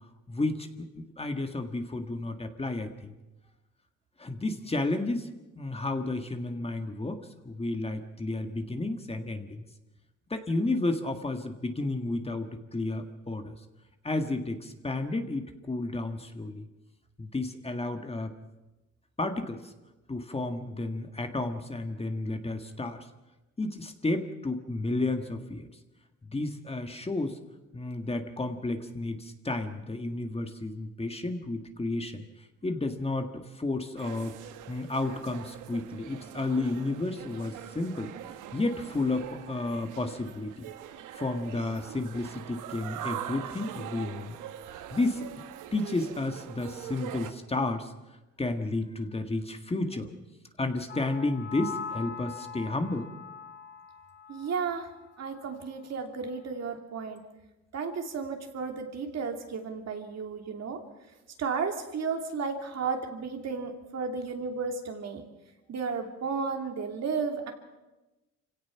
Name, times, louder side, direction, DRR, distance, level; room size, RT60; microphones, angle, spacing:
voice 1, 0.3-3.1 4.2-5.3 5.5-9.6 10.3-13.6 14.0-16.7 17.2-18.3 19.2-19.7 20.1-23.0 23.6-25.7 26.2-27.4 27.7-32.2 32.6-34.4 34.7-38.1 38.5-40.6 41.1-44.4 44.9-45.3 45.7-47.9 48.4-50.1 50.6-53.1, left 2 dB, 20° left, 6 dB, 1.8 m, -32 dB
sound 1, 34.0-47.3, right 11 dB, 85° right, 1.2 m, -43 dB
sound 2, 50.9-54.9 55.2-55.5, left 6 dB, 35° left, 1.0 m, -42 dB
voice 2, 54.3-54.9 55.2-57.2 57.7-60.8 61.4-65.2 65.7-67.5, right 5 dB, 60° right, 4 dB, 2.8 m, -33 dB
26.0 x 17.0 x 5.8 m, 1.1 s
cardioid pair, 90°, 30 cm